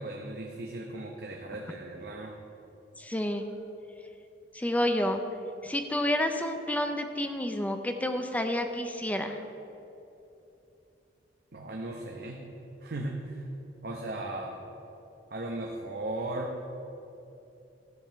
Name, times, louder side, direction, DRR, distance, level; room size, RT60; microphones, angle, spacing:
voice 1, 0.0-2.3 11.5-12.4 12.8-13.4 13.8-14.6 15.3-16.6, right 1 dB, 60° right, 0 dB, 0.9 m, -37 dB
voice 2, 3.0-3.4 4.5-5.2 5.6-9.4, left 1 dB, 10° left, 6 dB, 0.6 m, -29 dB
13.5 x 5.4 x 7.9 m, 2.9 s
head